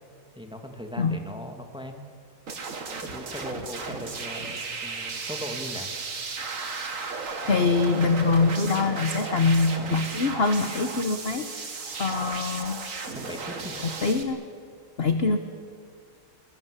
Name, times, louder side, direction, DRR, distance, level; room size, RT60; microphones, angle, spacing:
voice 1, 0.4-2.1 3.0-5.9 13.2-13.8, equal, 5° right, 4 dB, 2.0 m, -39 dB
sound 1, 2.5-14.2, right 4 dB, 45° right, 2.0 m, -35 dB
voice 2, 7.4-11.5 12.0-12.8 13.8-14.4 15.0-15.4, left 4 dB, 40° left, 8 dB, 1.1 m, -24 dB
22.5 x 21.5 x 8.3 m, 2.2 s
omnidirectional pair, 2.0 m